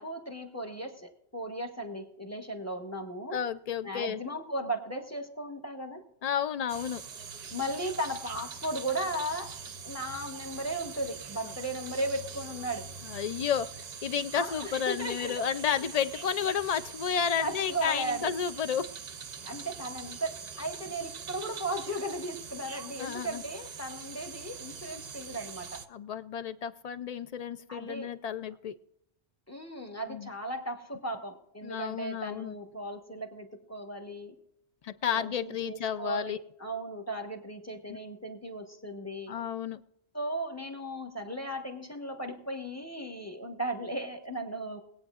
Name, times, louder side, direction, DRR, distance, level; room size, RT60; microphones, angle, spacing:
voice 1, 0.0-3.4 3.8-6.0 7.5-9.6 9.8-12.9 14.3-15.4 17.4-18.4 19.4-25.8 27.7-28.1 29.5-34.4 35.1-39.3 40.1-44.8, right 1 dB, 15° left, 4 dB, 1.2 m, -36 dB
voice 2, 3.3-4.2 6.2-7.0 11.4-11.5 13.1-18.9 23.0-23.4 25.9-28.7 30.1-30.3 31.6-32.5 34.8-36.4 39.3-39.8, left 8 dB, 60° left, 13 dB, 0.4 m, -32 dB
sound 1, 6.7-25.9, right 6 dB, 45° right, 0.7 m, -43 dB
21.5 x 8.8 x 2.4 m, 0.80 s
omnidirectional pair, 1.1 m